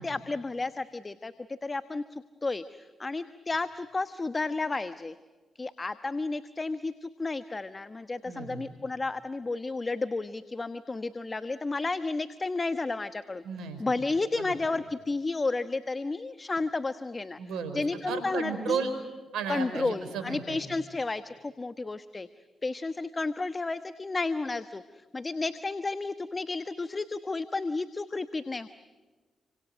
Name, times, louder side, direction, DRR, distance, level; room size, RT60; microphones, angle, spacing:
voice 1, 0.0-1.3 1.6-5.1 5.6-13.4 13.8-17.4 17.7-18.8 19.5-22.3 22.6-28.7, left 3 dB, 30° left, 11 dB, 1.2 m, -32 dB
voice 2, 8.2-8.7 13.4-13.8 14.3-14.5 17.4-18.9 19.3-20.6, right 6 dB, 80° right, 7 dB, 5.4 m, -34 dB
28.5 x 26.0 x 6.3 m, 1.3 s
supercardioid pair, 55°, 0 cm